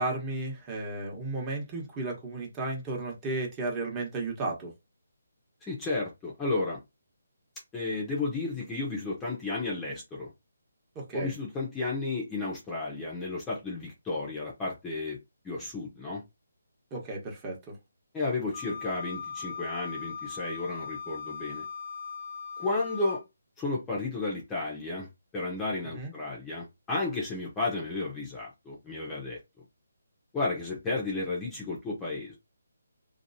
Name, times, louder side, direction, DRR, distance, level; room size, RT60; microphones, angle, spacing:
voice 1, 0.0-4.7 10.9-11.3 16.9-17.6 25.9-26.1, right 2 dB, 20° right, 1.2 m, -33 dB
voice 2, 5.6-6.8 7.7-10.3 11.1-15.2 15.4-16.2 18.1-21.6 22.6-23.2 23.6-29.4 30.3-32.4, left 3 dB, 10° left, 0.9 m, -33 dB
Wind instrument woodwind instrument, 18.5-23.2, left 5 dB, 45° left, 0.7 m, -39 dB
3.0 x 2.8 x 2.7 m
figure-of-eight pair, 150°, 0 cm